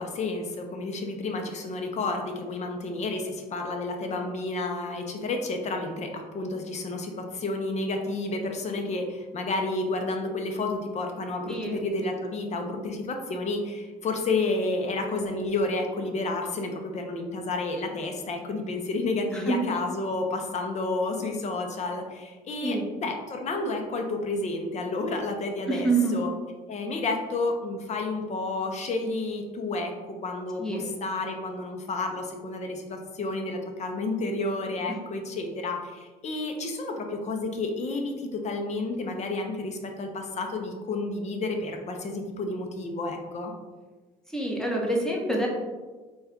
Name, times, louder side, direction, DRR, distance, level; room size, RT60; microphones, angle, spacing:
voice 1, 0.0-26.3 26.7-29.9 30.2-43.5, left 2 dB, 40° left, 3 dB, 0.6 m, -31 dB
voice 2, 11.5-11.8 19.5-19.6 22.6-22.8 25.7-26.2 30.6-30.9 44.3-45.5, right 2 dB, 5° left, -1 dB, 0.8 m, -26 dB
4.0 x 2.3 x 3.6 m, 1.3 s
cardioid pair, 110°, 17 cm